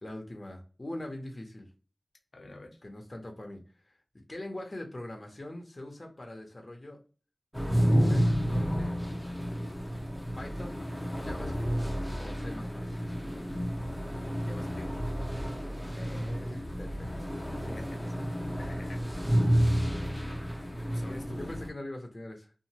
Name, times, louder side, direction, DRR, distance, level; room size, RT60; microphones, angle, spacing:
voice 1, 0.0-1.7 2.5-2.6 2.8-4.0 4.3-7.0 8.0-9.0 10.4-10.8 11.2-11.7 12.2-13.0 15.9-17.3 17.6-18.1 21.4-22.6, left 1 dB, 45° left, 2 dB, 0.7 m, -43 dB
voice 2, 2.3-2.8 14.5-14.9 17.6-18.0 18.6-19.2 20.9-21.5, left 2 dB, 85° left, 3 dB, 0.7 m, -47 dB
sound 1, 7.5-21.7, equal, 5° left, 0.7 m, -30 dB
2.7 x 2.5 x 2.9 m, 0.37 s
wide cardioid pair, 55°, 0 cm